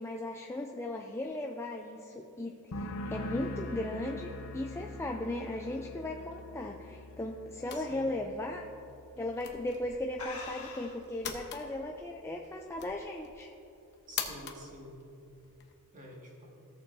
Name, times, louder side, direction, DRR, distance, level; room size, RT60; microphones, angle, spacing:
voice 1, 0.0-8.7 9.2-13.5, left 1 dB, 10° left, 1 dB, 0.4 m, -37 dB
sound 1, 2.7-10.2 10.5-11.0, left 1 dB, 90° left, 0.8 m, -44 dB
sound 2, 4.3-7.1 7.6-7.9 8.2-8.3 9.2-9.4 9.7-9.8 10.2-11.1, left 3 dB, 70° left, 1.8 m, -47 dB
sound 3, 7.7-15.7, left 7 dB, 50° left, 0.9 m, -45 dB
voice 2, 7.7-8.1 14.1-15.0 15.9-16.5, equal, 35° right, -3 dB, 1.9 m, -49 dB
16.0 x 6.9 x 2.7 m, 2.8 s
head